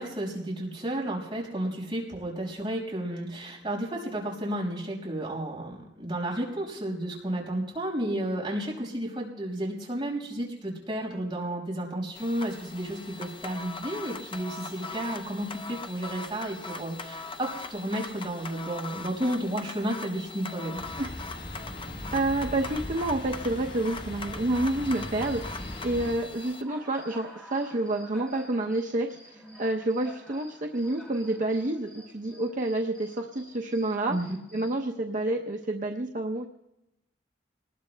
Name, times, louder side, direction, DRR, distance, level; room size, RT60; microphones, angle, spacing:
voice 1, 0.0-20.8 34.1-34.4, right 1 dB, 25° right, -4 dB, 5.4 m, -32 dB
sound 1, 12.2-26.6, left 3 dB, 30° left, 0.6 m, -41 dB
sound 2, 20.8-26.1, left 1 dB, 65° left, 6.4 m, -39 dB
voice 2, 22.1-34.1 34.5-36.5, right 2 dB, 45° right, 2 dB, 0.7 m, -29 dB
Cricket, 24.7-34.8, equal, 5° left, 4.2 m, -51 dB
27.0 x 20.0 x 2.2 m, 0.92 s
head